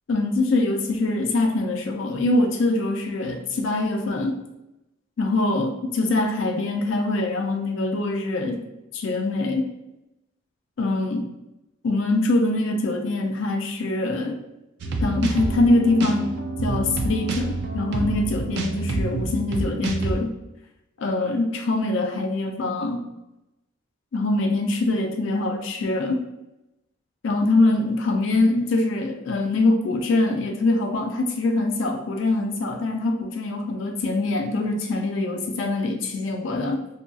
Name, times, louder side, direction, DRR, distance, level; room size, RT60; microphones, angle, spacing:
voice 1, 0.1-4.4 5.2-8.6 8.9-9.6 10.8-11.3 11.8-14.4 15.0-20.3 21.0-23.0 24.1-26.2 27.2-36.8, left 2 dB, 65° left, 3 dB, 0.4 m, -23 dB
sound 1, 14.8-20.2, right 2 dB, 55° right, 0.3 m, -27 dB
2.7 x 2.2 x 2.6 m, 0.92 s
head